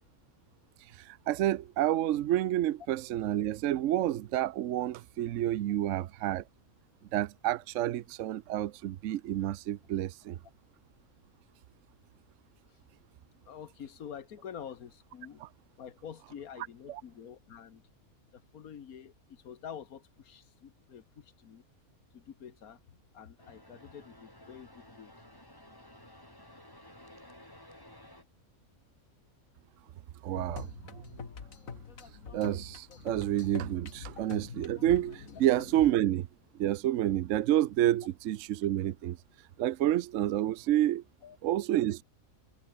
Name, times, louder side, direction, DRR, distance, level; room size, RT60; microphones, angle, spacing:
voice 1, 0.9-6.4 7.1-10.4 16.9-17.0 30.2-30.7 32.3-36.3 36.6-39.2 39.6-41.0 41.4-42.0, right 13 dB, 65° right, 0.9 m, -29 dB
voice 2, 13.5-15.4 15.8-17.8 18.3-21.6 22.1-22.8 23.1-25.1 41.2-41.4, left 8 dB, 90° left, 1.7 m, -47 dB
sound 1, 23.4-28.2, left 1 dB, 15° left, 3.9 m, -54 dB
sound 2, 30.4-35.9, left 6 dB, 70° left, 2.1 m, -44 dB
omnidirectional pair, 1.5 m